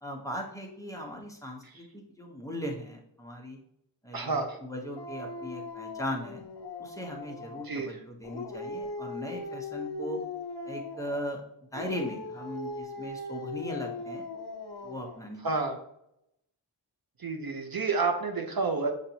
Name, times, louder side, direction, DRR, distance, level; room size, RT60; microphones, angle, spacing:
voice 1, 0.0-3.6 4.0-6.4 6.8-10.2 10.6-11.4 11.7-14.2 14.8-15.4, equal, 5° left, 0 dB, 0.9 m, -38 dB
voice 2, 4.1-4.6 7.6-8.0 15.4-15.8 17.2-18.9, right 4 dB, 55° right, 4 dB, 0.6 m, -29 dB
Dog, 5.0-7.8 8.2-11.3 11.7-15.3, left 3 dB, 60° left, 0.7 m, -39 dB
6.5 x 2.6 x 2.9 m, 0.76 s
wide cardioid pair, 75°, 45 cm